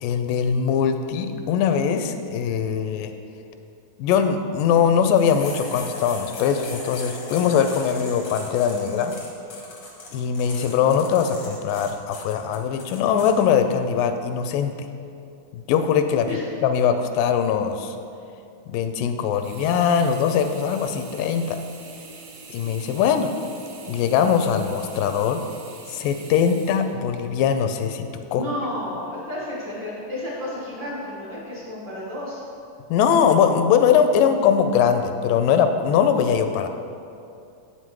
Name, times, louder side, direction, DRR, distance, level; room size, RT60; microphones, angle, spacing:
voice 1, 0.0-3.1 4.0-9.1 10.1-14.8 15.5-16.3 16.6-17.9 18.7-21.6 22.5-23.3 23.9-25.4 25.9-28.1 28.3-28.4 32.9-36.7, left 7 dB, 85° left, 7 dB, 2.2 m, -21 dB
sound 1, 5.1-13.3, left 3 dB, 65° left, 1.0 m, -39 dB
Sink (filling or washing), 19.3-27.6 28.1-28.2, right 4 dB, 70° right, 2.0 m, -44 dB
voice 2, 28.3-32.4, left 1 dB, 45° right, -8 dB, 1.6 m, -32 dB
8.1 x 5.8 x 4.6 m, 2.6 s
omnidirectional pair, 3.8 m